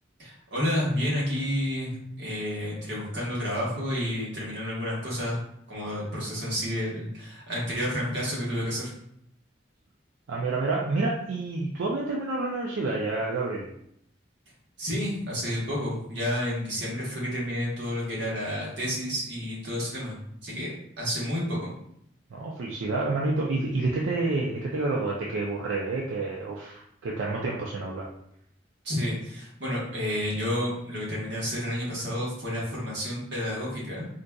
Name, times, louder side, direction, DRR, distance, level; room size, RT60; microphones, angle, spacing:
voice 1, 0.2-5.4 5.7-8.9 14.8-20.2 20.4-21.7 28.8-34.1, equal, 65° right, -6 dB, 1.3 m, -30 dB
voice 2, 10.3-13.7 22.3-28.1, right 3 dB, 85° right, -3 dB, 0.5 m, -29 dB
3.9 x 2.5 x 2.3 m, 0.72 s
head